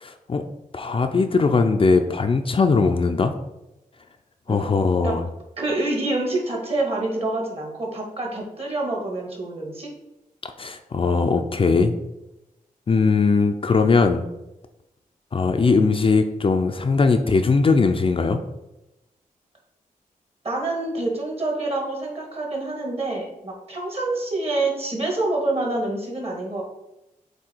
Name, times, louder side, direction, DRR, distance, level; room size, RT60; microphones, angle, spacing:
voice 1, 0.0-0.4 0.7-3.3 4.5-5.2 10.4-11.9 12.9-14.3 15.3-18.4, left 4 dB, 40° left, 6 dB, 0.5 m, -20 dB
voice 2, 5.6-9.9 20.4-26.6, right 2 dB, 45° right, -1 dB, 1.7 m, -27 dB
7.7 x 2.8 x 4.4 m, 0.92 s
wide cardioid pair, 120°, 14 cm